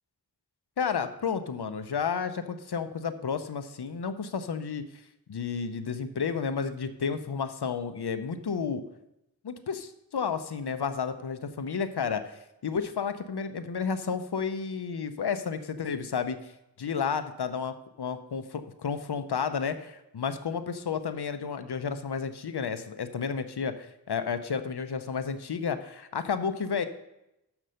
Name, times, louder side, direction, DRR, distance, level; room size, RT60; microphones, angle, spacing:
voice 1, 0.8-4.9 5.3-8.8 9.4-16.5 16.8-26.9, left 6 dB, 75° left, 10 dB, 0.7 m, -32 dB
6.7 x 6.0 x 6.3 m, 0.89 s
wide cardioid pair, 65°, 40 cm